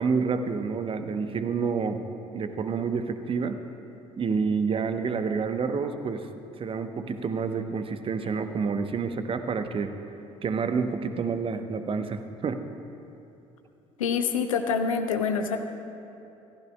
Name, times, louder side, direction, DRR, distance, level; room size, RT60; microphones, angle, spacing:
voice 1, 0.0-2.0 2.3-3.6 4.2-6.3 6.6-9.9 10.4-12.6, right 5 dB, 30° right, 8 dB, 0.8 m, -28 dB
voice 2, 14.0-15.6, left 6 dB, 75° left, 6 dB, 0.8 m, -26 dB
25.0 x 15.0 x 2.2 m, 2.8 s
figure-of-eight pair, 55°, 17 cm